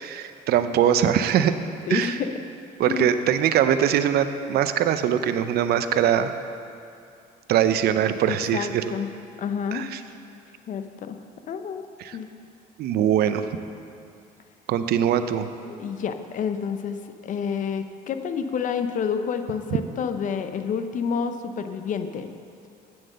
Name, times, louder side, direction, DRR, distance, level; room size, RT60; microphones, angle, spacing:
voice 1, 0.0-1.5 1.9-2.2 2.8-6.3 7.5-8.8 9.7-10.0 12.0-12.2 12.8-13.5 14.7-15.5, right 9 dB, 70° right, 10 dB, 0.6 m, -22 dB
voice 2, 1.9-2.3 2.9-3.1 8.3-9.1 9.4-9.8 10.7-11.2 11.5-11.9 12.1-12.3 15.6-17.0 17.2-22.3, left 6 dB, 50° left, 8 dB, 0.7 m, -29 dB
8.7 x 7.5 x 6.6 m, 2.5 s
cardioid pair, 110°, 17 cm